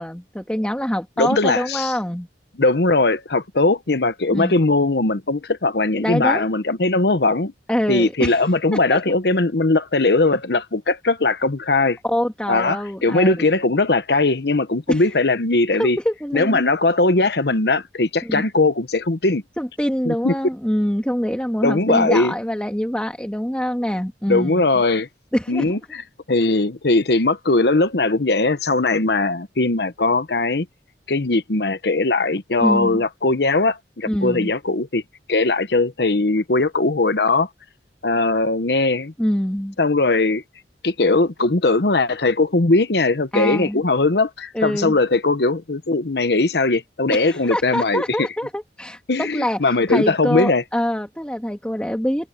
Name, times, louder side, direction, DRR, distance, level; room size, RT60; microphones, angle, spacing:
voice 1, 0.0-2.3 4.3-4.6 6.0-6.5 7.7-9.2 12.0-13.4 14.9-15.0 15.8-16.6 18.2-18.5 19.6-24.7 25.3-25.8 32.6-33.0 34.1-34.5 39.2-39.8 43.3-43.8 44.5-45.0 47.1-52.3, equal, 5° left, 1.8 m, -25 dB
voice 2, 1.2-1.9 2.6-7.5 7.9-12.0 12.5-16.0 16.3-19.4 20.1-20.3 21.6-22.3 24.3-25.1 25.5-25.8 26.3-30.7 31.1-35.0 35.3-37.5 38.0-39.1 39.8-40.4 40.8-48.0 49.1-50.6, left 3 dB, 70° left, 1.0 m, -19 dB
head